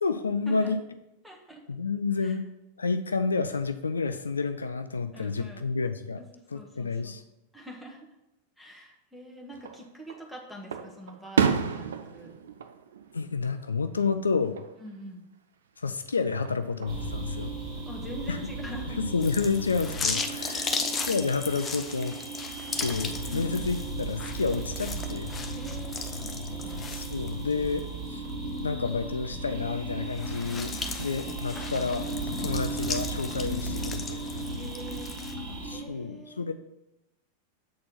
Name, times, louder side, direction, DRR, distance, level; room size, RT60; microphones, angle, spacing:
voice 1, 0.0-0.8 1.7-2.4 2.8-6.2 6.5-7.2 13.1-14.6 15.8-17.5 18.3-18.4 19.0-20.7 21.1-22.2 22.8-25.3 26.9-28.2 28.6-32.1 32.3-34.2 35.6-36.5, left 4 dB, 75° left, 9 dB, 0.4 m, -30 dB
voice 2, 1.2-1.6 2.2-2.4 5.1-5.7 6.5-7.2 7.5-8.1 8.6-12.3 14.8-15.2 17.9-19.0 20.4-20.8 23.3-23.7 25.5-26.8 34.5-36.5, right 1 dB, ahead, -1 dB, 1.6 m, -44 dB
Fireworks, 9.5-10.2 10.7-13.8 14.1-14.7 16.2-17.1, right 6 dB, 65° right, 0.5 m, -30 dB
sound 1, 16.9-35.8, right 2 dB, 45° right, 2.9 m, -36 dB
sound 2, 19.2-27.8 28.3-28.4 30.1-35.3, left 4 dB, 20° left, 0.7 m, -36 dB
7.5 x 4.3 x 5.5 m, 0.93 s
figure-of-eight pair, 90°, 0 cm